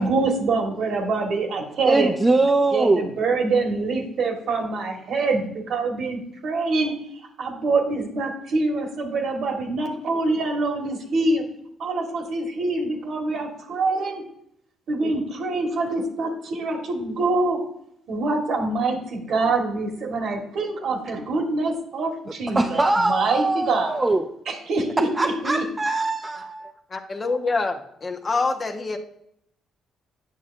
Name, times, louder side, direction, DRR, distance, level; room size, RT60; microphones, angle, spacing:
voice 1, 0.0-2.1 2.7-6.9 7.4-11.4 11.8-14.2 14.9-17.6 18.1-24.0 24.5-25.6, right 3 dB, 65° right, 1.3 m, -25 dB
voice 2, 1.9-3.2 22.5-24.3 25.1-26.7, right 2 dB, 20° right, 0.5 m, -22 dB
voice 3, 26.9-29.0, left 3 dB, 35° left, 0.8 m, -26 dB
8.2 x 6.0 x 2.4 m
supercardioid pair, 70°, 0 cm